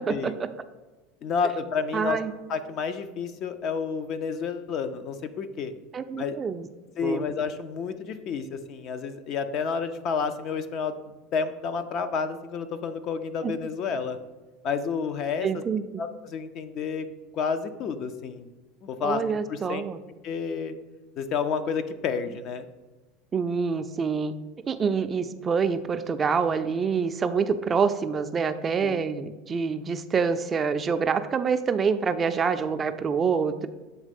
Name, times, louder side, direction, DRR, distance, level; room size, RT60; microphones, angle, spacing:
voice 1, 0.1-0.5 1.9-2.3 5.9-6.7 7.0-7.2 13.4-13.5 15.4-15.8 19.0-20.0 23.3-24.3 24.7-33.7, right 5 dB, 25° right, 9 dB, 0.3 m, -26 dB
voice 2, 1.2-2.2 2.5-5.7 6.1-6.4 7.0-11.0 11.3-14.2 14.6-15.6 16.0-17.1 17.3-18.5 18.8-19.2 19.5-19.8 20.2-20.7 21.2-22.7 28.8-29.1, left 5 dB, 45° left, 10 dB, 0.5 m, -30 dB
7.3 x 3.3 x 5.2 m, 1.2 s
supercardioid pair, 120°, 0 cm